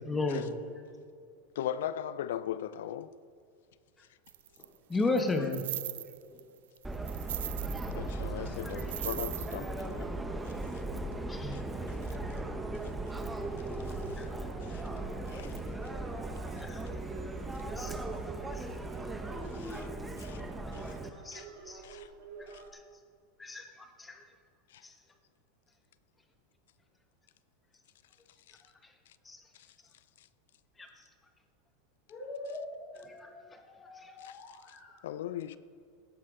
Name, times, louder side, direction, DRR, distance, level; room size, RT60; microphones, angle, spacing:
voice 1, 0.1-0.6 4.9-5.6 11.3-11.7 14.2-14.3 16.6-16.8 17.7-17.9 18.5-18.7 21.2-21.8 23.4-23.7 24.0-24.2 29.3-29.4 30.8-30.9 33.1-33.3 34.0-34.1, left 3 dB, 10° left, 1.2 m, -33 dB
voice 2, 1.6-3.1 7.9-10.2 10.4-10.5 11.5-11.6 13.8-14.2 14.6-14.8 15.3-15.6 19.5-19.9 20.2-20.4 20.7-21.0 21.3-21.5 21.8-22.1 22.5-22.6 24.7-24.8 28.5-28.6 34.2-34.4 35.0-35.6, left 10 dB, 85° left, 0.4 m, -39 dB
sound 1, 4.3-4.6 5.2-6.4 6.8-8.0 8.2-8.3 8.6-9.6, right 13 dB, 85° right, 0.3 m, -39 dB
Subway metro underground, 6.8-21.1, right 2 dB, 10° right, 0.8 m, -38 dB
sound 2, 13.7-22.7, right 5 dB, 65° right, 2.1 m, -49 dB
voice 3, 17.5-18.0 19.3-20.0 20.5-20.9 32.1-35.0, left 2 dB, 30° left, 2.9 m, -45 dB
16.5 x 9.9 x 3.8 m
supercardioid pair, 135°, 0 cm